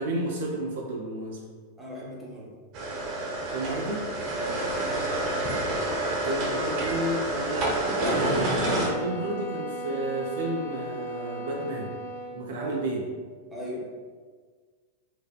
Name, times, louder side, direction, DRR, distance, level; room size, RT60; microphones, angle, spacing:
voice 1, 0.0-1.4 3.5-4.1 6.2-11.9 12.3-13.1, right 1 dB, 65° right, -1 dB, 0.4 m, -31 dB
voice 2, 1.8-2.5 4.3-4.7 12.5-12.8 13.5-13.9, equal, 10° right, -5 dB, 0.8 m, -37 dB
sound 1, 2.7-8.9, right 1 dB, 45° right, 0.7 m, -28 dB
sound 2, 7.7-12.5, right 1 dB, 60° left, 0.5 m, -37 dB
3.3 x 2.1 x 2.2 m, 1.5 s
figure-of-eight pair, 95°, 0 cm